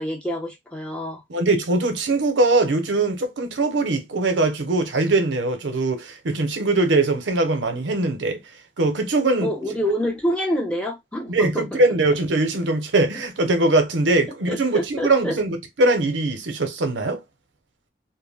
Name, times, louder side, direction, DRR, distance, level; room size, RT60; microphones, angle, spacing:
voice 1, 0.0-1.2 9.4-11.6 14.5-15.4, equal, 5° left, 0.7 m, -26 dB
voice 2, 1.3-8.4 8.8-9.5 11.3-17.2, right 2 dB, 90° right, 0.7 m, -21 dB
2.2 x 2.1 x 3.3 m
head